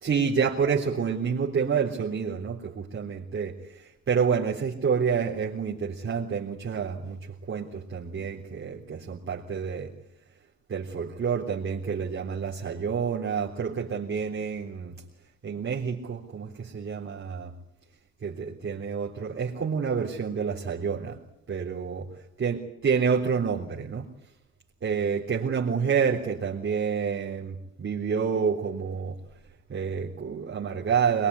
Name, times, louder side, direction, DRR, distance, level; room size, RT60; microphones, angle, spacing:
voice 1, 0.0-9.9 10.7-15.0 15.4-17.5 18.2-21.2 21.5-22.1 22.4-24.1 24.8-29.2 29.7-31.3, right 6 dB, 40° right, -4 dB, 3.6 m, -28 dB
22.5 x 22.0 x 9.8 m, 0.82 s
cardioid pair, 90°, 30 cm